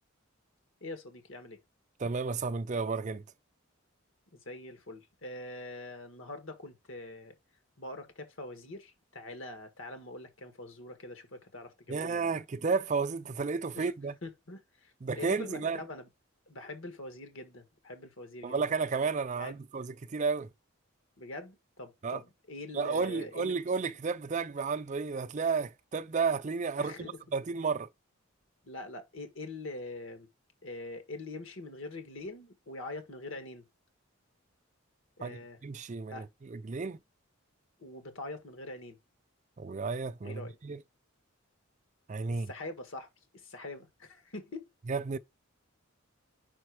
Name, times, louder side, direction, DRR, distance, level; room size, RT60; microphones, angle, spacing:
voice 1, 0.8-1.6 4.3-7.4 7.8-12.4 13.7-13.9 14.2-16.1 16.5-18.6 19.4-19.5 21.2-23.5 26.8-27.1 28.6-30.3 30.6-33.6 35.2-35.6 36.1-36.3 37.8-39.0 40.2-40.5 42.3-43.1 43.3-44.7, left 2 dB, 65° left, 1.5 m, -44 dB
voice 2, 2.0-3.2 11.9-14.2 15.0-15.8 18.4-20.5 22.0-22.2 22.7-27.1 27.3-27.9 35.2-37.0 39.6-40.8 42.1-42.5 44.9-45.2, right 4 dB, 35° right, 0.5 m, -32 dB
5.2 x 4.3 x 4.7 m
head